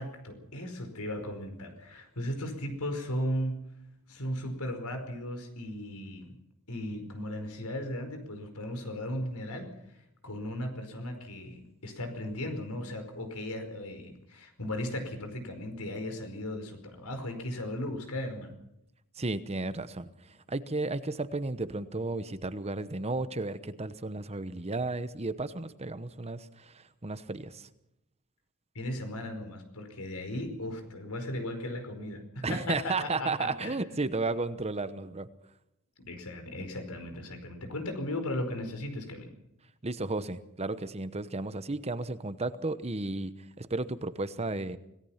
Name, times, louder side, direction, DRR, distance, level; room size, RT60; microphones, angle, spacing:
voice 1, 0.0-3.6 4.1-6.4 6.7-18.6 28.7-33.8 36.0-39.3, left 1 dB, 85° left, 7 dB, 5.0 m, -36 dB
voice 2, 19.2-27.7 32.4-35.3 39.8-44.8, right 3 dB, 30° right, 12 dB, 1.0 m, -33 dB
26.0 x 18.0 x 5.8 m, 0.82 s
head